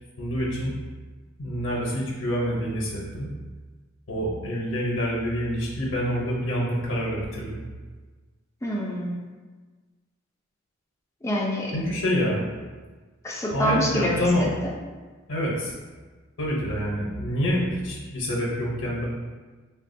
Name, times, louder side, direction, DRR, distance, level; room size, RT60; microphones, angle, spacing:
voice 1, 0.2-0.7 1.4-3.3 4.1-7.6 11.7-12.4 13.5-14.5 15.3-15.7 16.4-19.0, equal, 85° left, -4 dB, 0.7 m, -27 dB
voice 2, 8.6-9.2 11.2-11.8 13.2-14.5, equal, 15° left, -3 dB, 0.4 m, -26 dB
3.5 x 2.3 x 2.5 m, 1.4 s
head